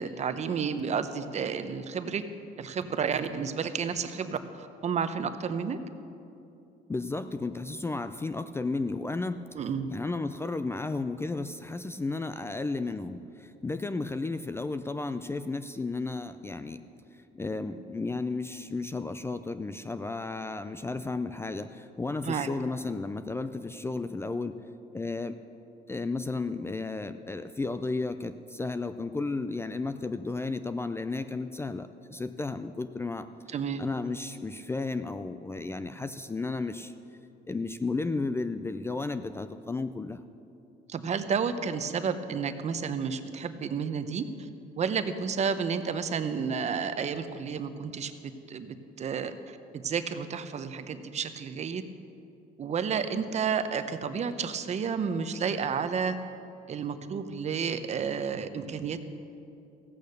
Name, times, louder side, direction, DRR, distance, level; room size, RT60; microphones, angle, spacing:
voice 1, 0.0-2.2 2.6-5.8 9.5-9.9 22.2-22.5 33.5-33.8 40.9-44.3 44.8-48.1 48.5-51.8 52.6-56.2 56.7-59.0, right 6 dB, 40° right, 10 dB, 0.8 m, -31 dB
voice 2, 6.9-9.4 9.9-16.8 17.1-24.6 24.9-25.4 25.9-33.3 33.8-36.9 37.5-40.2, left 3 dB, 15° left, 11 dB, 0.4 m, -33 dB
15.5 x 8.5 x 6.6 m, 2.7 s
cardioid pair, 110°, 17 cm